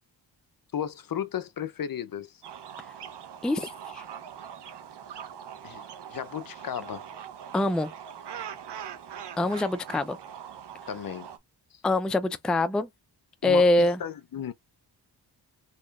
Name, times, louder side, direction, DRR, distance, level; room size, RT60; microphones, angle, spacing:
voice 1, 0.7-2.4 5.6-5.8 6.1-7.0 10.9-11.3 11.7-11.8 13.4-14.5, left 9 dB, 50° left, 0.6 m, -34 dB
sound 1, 2.4-11.4, right 8 dB, 70° right, 0.8 m, -42 dB
voice 2, 3.4-4.0 7.5-7.9 9.4-10.2 11.8-12.9 13.4-14.0, left 2 dB, ahead, 0.4 m, -24 dB
4.2 x 2.9 x 2.4 m
cardioid pair, 75°, 43 cm